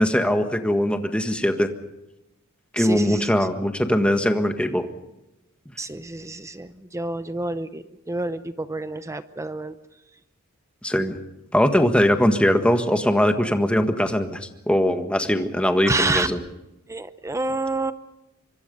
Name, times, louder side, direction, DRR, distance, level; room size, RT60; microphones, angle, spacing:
voice 1, 0.0-1.7 2.7-4.9 10.8-11.2 11.5-14.4 14.7-16.4, equal, 5° left, 6 dB, 1.6 m, -21 dB
voice 2, 2.8-3.3 5.8-9.7 15.9-16.5 16.9-17.9, right 2 dB, 15° right, 12 dB, 0.7 m, -28 dB
25.5 x 24.0 x 5.4 m, 0.93 s
head